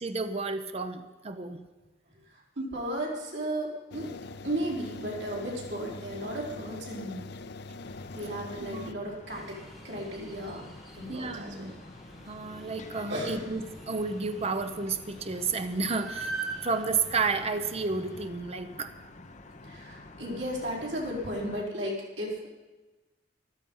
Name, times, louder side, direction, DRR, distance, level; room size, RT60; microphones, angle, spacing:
voice 1, 0.0-1.6 8.6-8.9 11.1-11.7 12.3-16.3 16.6-18.9, right 4 dB, 35° right, 9 dB, 0.8 m, -31 dB
voice 2, 2.3-4.1 4.4-7.2 8.1-9.6 9.8-10.6 10.9-11.7 13.1-13.5 19.6-22.5, right 1 dB, 85° right, -3 dB, 4.9 m, -35 dB
sound 1, 3.9-8.9, left 3 dB, 65° left, 0.6 m, -43 dB
sound 2, 7.8-21.7, left 2 dB, 40° left, 0.9 m, -49 dB
sound 3, 9.3-18.3, right 3 dB, ahead, 2.4 m, -44 dB
14.0 x 12.5 x 5.6 m, 1.2 s
head